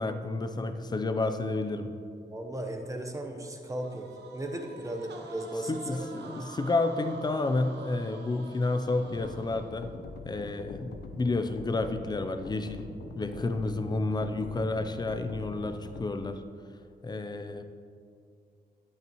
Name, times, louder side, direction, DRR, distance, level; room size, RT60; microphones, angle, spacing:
voice 1, 0.0-1.9 5.7-9.9 10.2-16.4 17.0-17.6, left 2 dB, 25° left, 8 dB, 0.5 m, -30 dB
voice 2, 2.2-6.1, right 1 dB, 20° right, 3 dB, 0.9 m, -36 dB
sound 1, 3.6-10.0, right 3 dB, 85° right, 0.8 m, -47 dB
sound 2, 9.1-16.1, left 3 dB, 85° left, 0.7 m, -44 dB
11.0 x 8.5 x 3.0 m, 2.4 s
wide cardioid pair, 125°, 17 cm